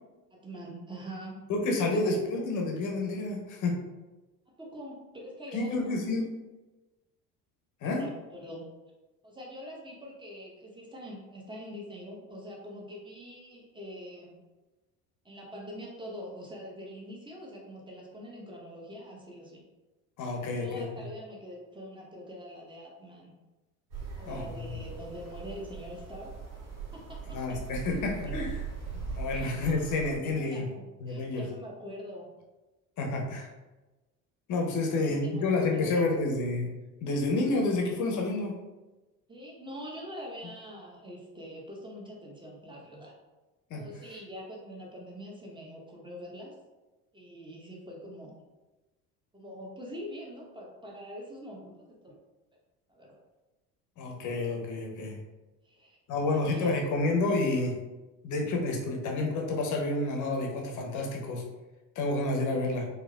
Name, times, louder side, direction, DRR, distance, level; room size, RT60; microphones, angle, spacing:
voice 1, 0.3-1.4 1.9-2.1 4.6-6.0 7.8-8.7 9.2-14.4 15.2-19.6 20.4-23.3 24.2-26.3 26.9-27.4 29.3-29.5 30.2-32.3 34.8-36.2 39.3-43.1 43.7-46.5 47.1-48.3 49.3-52.2 52.9-53.1 55.6-56.9, equal, 10° right, -3 dB, 1.0 m, -44 dB
voice 2, 1.5-3.8 5.5-6.4 7.8-8.0 20.2-21.1 24.3-24.8 27.3-28.6 29.2-30.7 31.0-31.5 33.0-33.5 34.5-36.7 37.0-38.6 43.7-43.9 54.0-55.2 56.1-57.8 58.2-61.4 61.9-62.9, left 2 dB, 40° left, 0 dB, 0.9 m, -29 dB
sound 1, 23.9-30.2, right 6 dB, 75° right, 1.0 m, -40 dB
4.4 x 2.4 x 2.4 m, 1.1 s
figure-of-eight pair, 60°, 47 cm